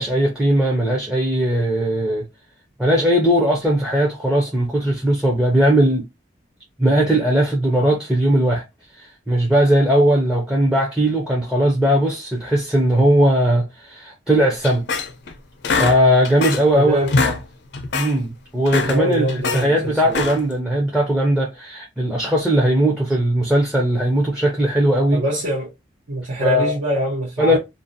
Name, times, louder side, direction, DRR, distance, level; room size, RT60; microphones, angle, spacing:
voice 1, 0.0-2.3 2.8-6.0 6.8-8.6 9.0-14.8 15.6-17.4 17.9-25.2 26.4-26.7 27.4-27.6, right 1 dB, 5° right, 0.4 m, -18 dB
sound 1, 14.6-15.3 15.6-16.7 17.0-17.4 17.7-18.1 18.5-19.6 20.1-20.6, left 4 dB, 60° left, 0.4 m, -23 dB
voice 2, 16.7-17.1 18.8-20.3 25.1-25.7 26.1-27.6, right 1 dB, 85° right, 0.7 m, -24 dB
2.5 x 2.0 x 2.5 m
head